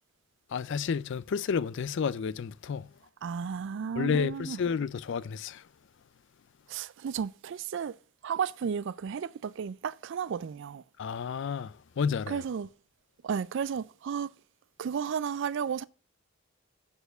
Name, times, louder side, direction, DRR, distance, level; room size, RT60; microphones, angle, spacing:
voice 1, 0.5-2.9 4.0-5.6 11.0-12.4, left 6 dB, 55° left, 0.4 m, -31 dB
voice 2, 3.2-4.6 6.7-8.0 8.2-10.8 12.3-12.7 13.2-14.3 14.8-15.9, right 7 dB, 55° right, 0.3 m, -33 dB
6.9 x 4.4 x 6.6 m
head